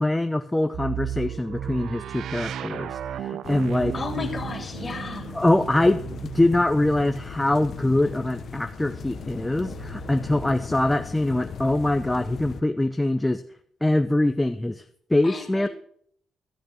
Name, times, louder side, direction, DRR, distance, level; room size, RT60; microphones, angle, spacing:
voice 1, 0.0-4.3 5.3-6.0 6.3-13.4 13.8-14.8 15.1-15.7, left 1 dB, 10° left, 8 dB, 0.6 m, -23 dB
sound 1, 0.7-10.6 11.6-12.6, right 10 dB, 70° right, 0.3 m, -36 dB
sound 2, 3.4-12.6, left 6 dB, 55° left, 0.8 m, -38 dB
voice 2, 3.9-5.4 15.2-15.7, left 4 dB, 30° left, 2 dB, 2.9 m, -34 dB
13.0 x 6.5 x 6.5 m, 0.63 s
cardioid pair, 90°, 0 cm